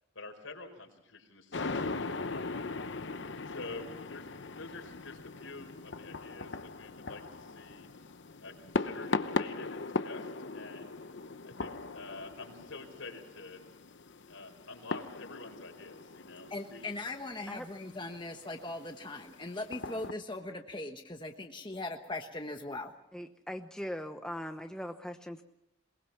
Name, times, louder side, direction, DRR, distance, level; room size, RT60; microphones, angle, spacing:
voice 1, 0.1-2.6 3.5-8.1 8.4-11.0 11.4-13.6 14.3-16.9, left 3 dB, 75° left, 4 dB, 4.8 m, -48 dB
sound 1, 1.5-20.1, left 3 dB, 55° left, 0.8 m, -39 dB
voice 2, 16.5-22.9, left 2 dB, 20° left, 3 dB, 1.2 m, -40 dB
voice 3, 23.1-25.4, equal, 5° left, 5 dB, 0.9 m, -40 dB
22.5 x 21.5 x 6.0 m, 0.86 s
head